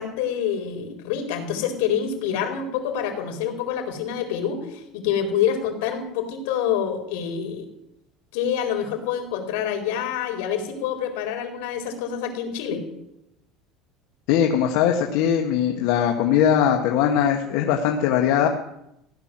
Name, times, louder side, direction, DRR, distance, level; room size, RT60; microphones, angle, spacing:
voice 1, 0.0-7.7 8.3-12.8, left 8 dB, 85° left, 4 dB, 4.3 m, -27 dB
voice 2, 14.3-18.5, left 9 dB, 65° left, 2 dB, 1.6 m, -20 dB
16.0 x 11.5 x 7.8 m, 0.82 s
cardioid pair, 170°, 0 cm